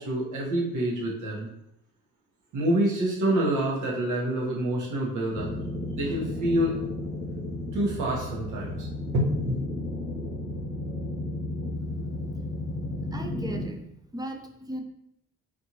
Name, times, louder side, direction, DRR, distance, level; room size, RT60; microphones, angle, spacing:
voice 1, 0.0-1.5 2.5-5.5 5.9-6.8 7.7-8.9 9.1-9.6, right 1 dB, 75° right, -3 dB, 1.2 m, -27 dB
sound 1, 5.3-13.7, left 1 dB, 40° left, 0.7 m, -33 dB
voice 2, 13.1-13.8 14.1-14.8, right 1 dB, 15° right, 4 dB, 0.5 m, -36 dB
4.4 x 2.5 x 2.9 m, 0.76 s
cardioid pair, 90°, 30 cm